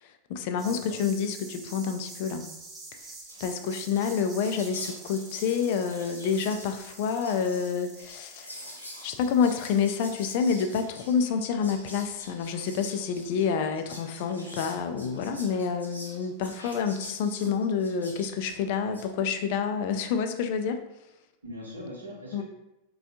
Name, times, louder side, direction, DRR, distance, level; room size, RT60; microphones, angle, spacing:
voice 1, 0.0-2.4 3.4-8.7 9.0-20.8 22.3-22.4, left 6 dB, 50° left, 7 dB, 0.3 m, -28 dB
voice 2, 0.5-1.0 21.4-22.4, equal, 75° right, -5 dB, 0.7 m, -41 dB
sound 1, 0.6-11.1, right 3 dB, 20° right, 0.6 m, -47 dB
Whispering, 2.9-3.0 3.1-19.1, left 1 dB, 85° left, 0.8 m, -46 dB
4.1 x 2.2 x 2.7 m, 0.94 s
figure-of-eight pair, 90°, 0 cm